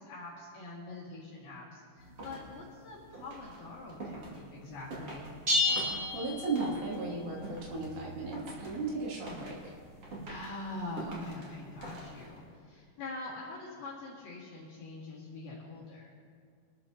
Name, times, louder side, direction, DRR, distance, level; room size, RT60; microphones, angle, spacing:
voice 1, 0.0-5.3 10.3-16.1, left 2 dB, 60° left, -7 dB, 3.6 m, -44 dB
sound 1, 2.0-12.5, right 2 dB, 40° right, 2.7 m, -46 dB
sound 2, 5.5-7.0, left 2 dB, 25° right, 1.8 m, -30 dB
voice 2, 6.1-9.7, right 3 dB, 70° right, -4 dB, 4.7 m, -36 dB
24.5 x 13.5 x 2.9 m, 2.2 s
omnidirectional pair, 5.3 m